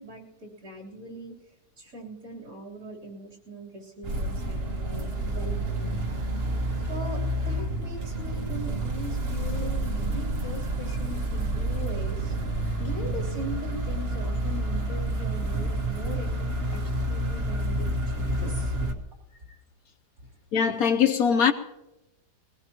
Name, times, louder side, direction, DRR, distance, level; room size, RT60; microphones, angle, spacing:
voice 1, 0.0-1.4 1.8-6.0 6.9-12.3 12.8-16.8 17.1-18.7, right 1 dB, 60° right, 4.2 m, -40 dB
sound 1, 4.0-18.9, right 1 dB, 40° right, 1.5 m, -29 dB
voice 2, 20.5-21.5, left 7 dB, 65° left, 1.2 m, -21 dB
21.5 x 18.5 x 3.0 m
omnidirectional pair, 1.7 m